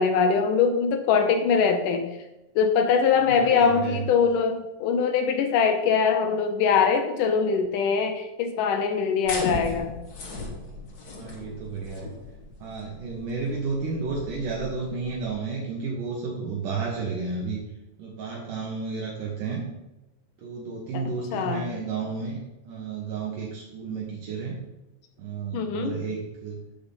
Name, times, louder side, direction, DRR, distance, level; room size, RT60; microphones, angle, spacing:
voice 1, 0.0-2.1 2.6-9.9 20.9-21.0 21.3-21.7 25.5-25.9, left 6 dB, 75° left, 6 dB, 2.3 m, -22 dB
voice 2, 3.3-4.0 11.1-12.1 12.6-17.6 18.0-19.7 20.4-24.6 25.2-26.7, right 4 dB, 70° right, -3 dB, 3.0 m, -32 dB
sound 1, 9.3-15.3, left 2 dB, 45° left, 1.3 m, -37 dB
9.6 x 5.4 x 7.1 m, 0.95 s
omnidirectional pair, 4.0 m